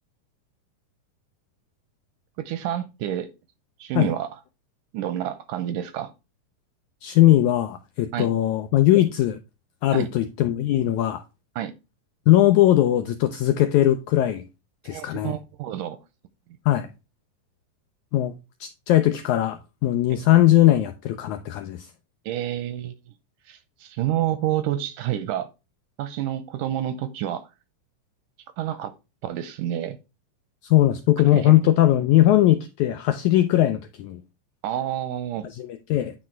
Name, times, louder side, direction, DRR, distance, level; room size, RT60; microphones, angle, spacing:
voice 1, 2.4-3.3 3.8-4.4 4.9-6.1 8.1-8.3 9.9-10.1 11.6-11.7 14.8-16.0 22.3-22.9 23.5-25.5 26.0-27.5 28.6-28.9 29.2-30.0 31.3-31.5 34.6-35.5, right 11 dB, 80° right, 2.0 m, -28 dB
voice 2, 7.0-9.4 9.8-11.2 12.3-14.4 14.8-15.3 16.6-16.9 18.1-18.3 18.6-21.9 30.6-34.2 35.4-36.1, left 13 dB, 85° left, 1.7 m, -20 dB
9.5 x 4.4 x 4.4 m
omnidirectional pair, 4.0 m